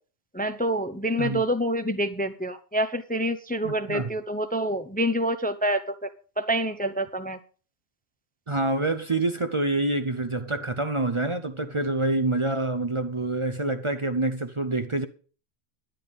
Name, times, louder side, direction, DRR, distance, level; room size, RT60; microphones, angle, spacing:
voice 1, 0.3-6.1 6.4-7.4, equal, 10° left, 0.6 m, -27 dB
voice 2, 3.6-4.1 8.5-15.1, right 2 dB, 30° right, 0.7 m, -27 dB
10.5 x 10.0 x 5.3 m
omnidirectional pair, 1.1 m